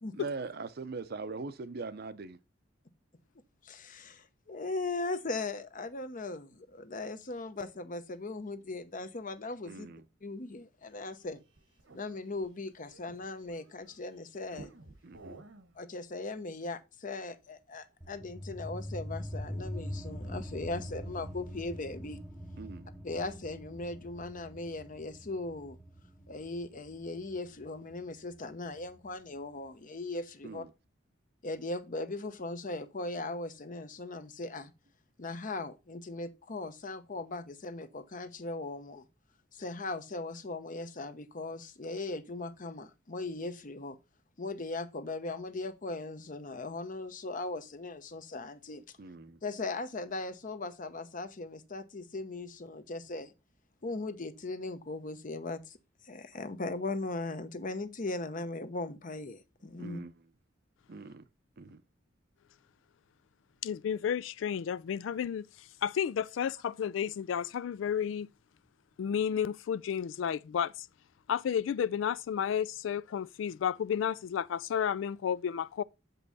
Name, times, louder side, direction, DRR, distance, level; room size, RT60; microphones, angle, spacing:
voice 1, 0.1-2.4 9.7-10.0 15.0-15.4 22.6-22.9 30.4-30.7 49.0-49.4 59.8-60.1 60.9-61.2 61.6-61.8, right 3 dB, 55° right, 0.6 m, -41 dB
voice 2, 3.6-9.9 10.2-11.4 11.9-14.7 15.8-22.2 23.0-25.8 26.3-30.7 31.4-34.7 35.2-39.0 39.5-44.0 44.4-48.8 49.4-53.3 53.8-55.8 56.0-60.0 61.6-61.7, left 2 dB, 45° left, 0.8 m, -39 dB
sound 1, 10.9-14.0 14.4-15.7, right 2 dB, 80° right, 1.2 m, -53 dB
sound 2, 18.0-29.1, equal, ahead, 0.8 m, -43 dB
voice 3, 63.6-68.3 69.0-70.9 71.3-75.8, left 8 dB, 80° left, 0.3 m, -32 dB
7.3 x 5.4 x 4.0 m
head